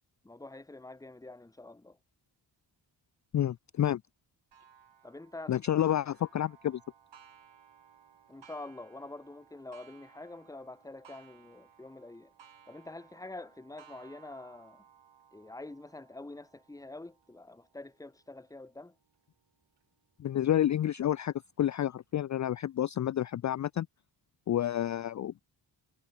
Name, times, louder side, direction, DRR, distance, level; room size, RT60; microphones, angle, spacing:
voice 1, 0.2-2.0 5.0-5.9 8.3-12.3 12.7-14.9 15.3-19.0, left 2 dB, 10° left, 0.8 m, -46 dB
voice 2, 3.3-4.0 5.5-6.8 20.2-23.9 24.5-25.4, left 11 dB, 40° left, 0.4 m, -29 dB
Clock, 4.5-19.8 20.4-20.5 21.0-21.1 22.1-22.2, right 8 dB, 75° right, 3.8 m, -60 dB
cardioid pair, 70°, 45 cm